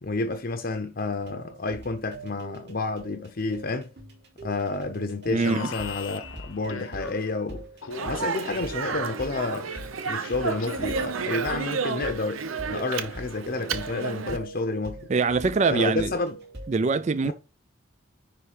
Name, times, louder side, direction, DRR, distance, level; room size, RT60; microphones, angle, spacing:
voice 1, 0.0-3.9 4.4-7.7 8.0-9.7 10.1-12.4 12.7-15.1 15.7-16.4 17.2-17.3, left 3 dB, 45° left, 0.7 m, -30 dB
sound 1, 1.0-16.7, right 2 dB, 55° right, 2.9 m, -43 dB
voice 2, 5.3-5.7 15.1-16.1 16.7-17.3, right 4 dB, 35° right, 0.3 m, -23 dB
Alarm, 5.4-7.4 7.8-11.1, left 5 dB, 90° left, 1.1 m, -41 dB
Speech, 7.9-14.4, right 5 dB, 90° right, 0.8 m, -32 dB
10.0 x 3.4 x 4.9 m
head